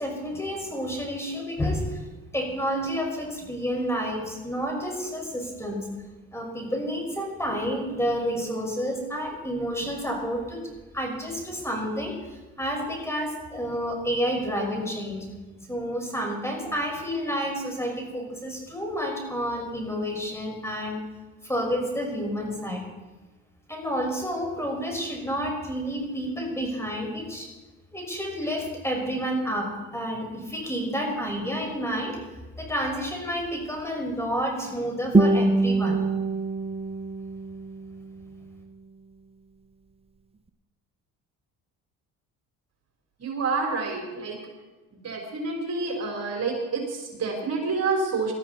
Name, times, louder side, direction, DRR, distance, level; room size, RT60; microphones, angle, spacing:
voice 1, 0.0-2.0 2.3-5.9 6.3-12.2 12.6-15.3 15.7-21.0 21.4-22.8 23.7-27.5 27.9-32.2 32.6-36.0, equal, 10° left, 1 dB, 5.8 m, -30 dB
Guitar, 35.1-38.2, right 2 dB, 15° right, 1.1 m, -24 dB
voice 2, 43.2-44.4 44.9-48.3, right 4 dB, 45° right, 1 dB, 4.1 m, -28 dB
19.0 x 13.5 x 4.3 m, 1.2 s
supercardioid pair, 75°, 34 cm